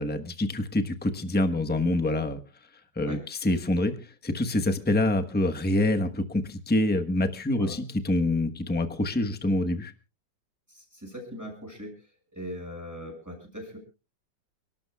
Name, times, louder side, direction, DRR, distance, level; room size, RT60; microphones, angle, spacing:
voice 1, 0.0-2.4 3.0-9.9, left 1 dB, 5° left, 6 dB, 0.8 m, -26 dB
voice 2, 10.7-13.8, equal, 10° right, 1 dB, 6.3 m, -40 dB
30.0 x 12.0 x 2.3 m, 0.31 s
omnidirectional pair, 2.0 m